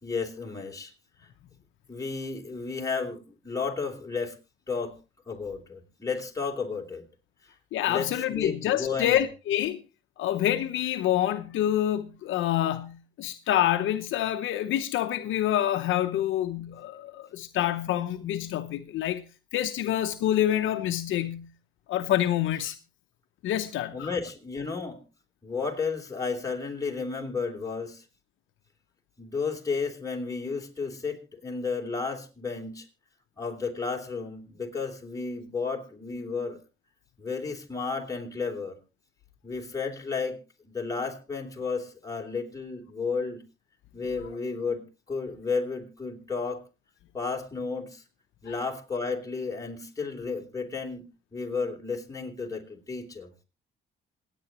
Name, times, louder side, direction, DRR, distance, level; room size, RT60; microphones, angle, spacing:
voice 1, 0.0-0.9 1.9-4.4 4.7-4.9 5.3-7.0 7.8-9.2 23.9-25.0 25.4-28.0 29.2-32.9 33.4-36.6 37.2-38.8 39.4-40.4 40.6-43.4 43.9-46.6 47.1-48.0 48.4-51.0 51.3-53.3, left 4 dB, 15° left, 3.4 m, -32 dB
voice 2, 7.7-9.8 10.2-19.2 19.5-21.5 21.9-22.8 23.4-24.1, left 12 dB, 80° left, 0.9 m, -27 dB
27.0 x 9.2 x 3.0 m
cardioid pair, 90°, 20 cm